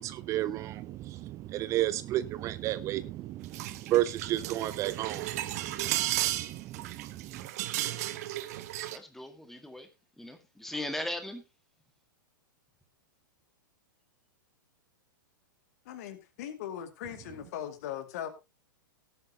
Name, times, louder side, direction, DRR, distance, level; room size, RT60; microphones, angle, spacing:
voice 1, 0.0-7.5, right 14 dB, 30° right, 0.5 m, -33 dB
sound 1, 3.4-9.0, right 14 dB, 50° right, 1.1 m, -34 dB
voice 2, 7.3-8.1 8.9-9.9 10.2-11.4, left 1 dB, 5° left, 1.8 m, -39 dB
voice 3, 15.8-18.3, left 10 dB, 50° left, 2.3 m, -39 dB
18.0 x 8.6 x 2.9 m
figure-of-eight pair, 100°, 11 cm